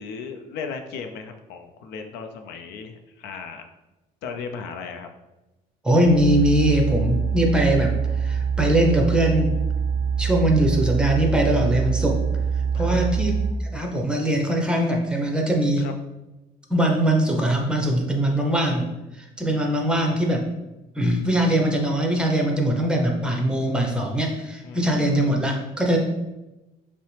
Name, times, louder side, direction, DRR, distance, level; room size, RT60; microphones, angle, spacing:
voice 1, 0.0-3.6 4.2-5.1 12.7-13.2 15.8-15.9 24.6-25.5, left 5 dB, 90° left, 6 dB, 0.5 m, -36 dB
voice 2, 5.8-8.0 8.2-9.5 10.2-12.2 12.7-13.3 13.6-15.9 16.7-18.9 19.2-20.5 21.0-26.0, right 1 dB, 5° right, 1 dB, 0.7 m, -21 dB
sound 1, 6.0-13.5, right 6 dB, 85° right, 0.4 m, -24 dB
5.5 x 2.0 x 3.2 m, 1.0 s
cardioid pair, 110°, 17 cm